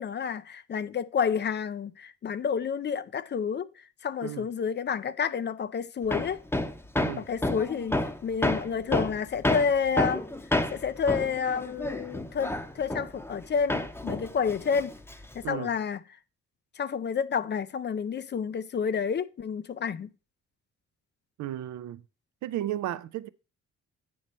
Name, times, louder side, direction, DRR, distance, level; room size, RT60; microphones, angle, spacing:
voice 1, 0.0-3.7 4.0-6.4 7.2-10.3 10.7-14.9 15.3-16.0 16.8-20.1, left 6 dB, 40° left, 0.4 m, -29 dB
Hammer, 6.1-13.4 13.7-15.5, left 1 dB, 10° left, 0.7 m, -30 dB
voice 2, 21.4-22.0 22.4-23.3, right 13 dB, 80° right, 0.5 m, -34 dB
8.5 x 3.1 x 5.3 m
cardioid pair, 80°, 29 cm